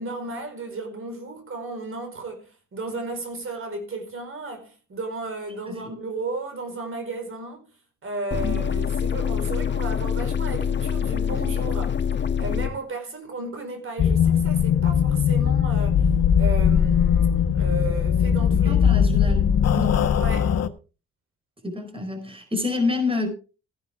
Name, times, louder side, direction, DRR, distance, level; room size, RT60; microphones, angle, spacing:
voice 1, 0.0-7.7 8.0-12.0 12.4-16.0 16.4-18.8 20.2-20.5, right 2 dB, 45° right, 5.0 m, -34 dB
sound 1, 8.3-12.7, left 7 dB, 35° left, 1.5 m, -25 dB
sound 2, 14.0-20.7, left 8 dB, 55° left, 1.3 m, -20 dB
voice 2, 18.6-20.0 21.6-23.3, left 3 dB, 20° right, 4.7 m, -28 dB
15.0 x 11.5 x 3.7 m
cardioid pair, 90°, 30 cm